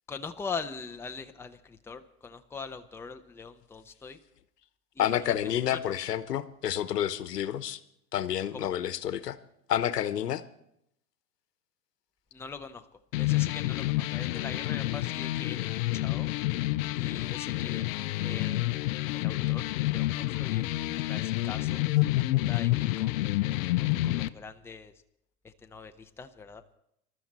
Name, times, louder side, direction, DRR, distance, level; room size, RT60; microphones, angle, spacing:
voice 1, 0.1-4.2 4.9-5.3 5.7-6.0 8.5-8.7 12.3-12.9 13.1-15.7 15.9-16.3 16.9-17.8 18.2-21.8 22.3-24.9 25.4-26.6, left 5 dB, 5° left, 7 dB, 0.7 m, -42 dB
voice 2, 5.0-7.8 8.1-9.4 9.7-10.4, left 11 dB, 80° left, 14 dB, 1.1 m, -29 dB
sound 1, 13.1-24.3, left 17 dB, 60° left, 0.7 m, -28 dB
20.5 x 13.0 x 4.3 m, 0.75 s
hypercardioid pair, 105°, 47 cm